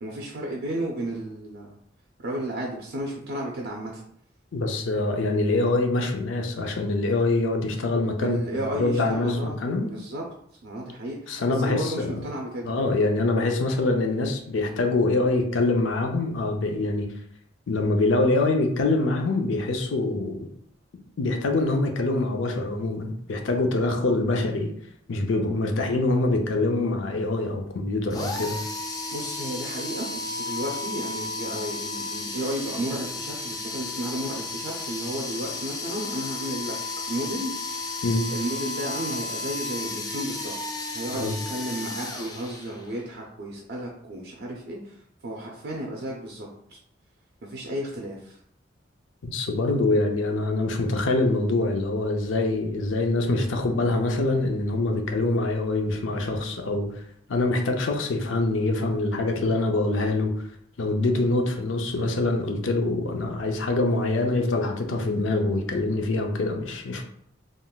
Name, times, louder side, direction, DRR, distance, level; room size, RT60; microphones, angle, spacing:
voice 1, 0.0-1.8 2.2-4.0 8.2-10.2 10.6-12.7 29.1-36.7 37.1-37.8 38.3-46.8 47.5-48.4, right 1 dB, 60° right, -1 dB, 0.5 m, -33 dB
voice 2, 4.5-9.9 11.3-12.2 12.6-17.1 17.7-20.5 21.2-24.7 25.1-28.6 38.0-38.3 41.1-41.3 49.2-56.9 57.3-60.3 60.8-67.0, left 2 dB, 85° left, 4 dB, 0.5 m, -24 dB
sound 1, 28.1-43.0, left 3 dB, 20° left, 0.4 m, -33 dB
3.6 x 2.5 x 2.3 m, 0.67 s
head